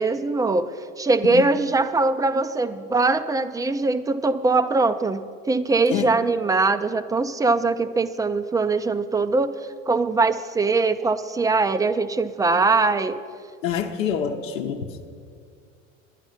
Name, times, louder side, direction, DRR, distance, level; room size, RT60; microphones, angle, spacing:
voice 1, 0.0-9.5 9.9-13.2, right 3 dB, 10° right, 12 dB, 0.3 m, -22 dB
voice 2, 13.6-15.1, left 8 dB, 85° left, 0 dB, 0.8 m, -27 dB
11.5 x 9.8 x 5.6 m, 2.2 s
hypercardioid pair, 90°, 37 cm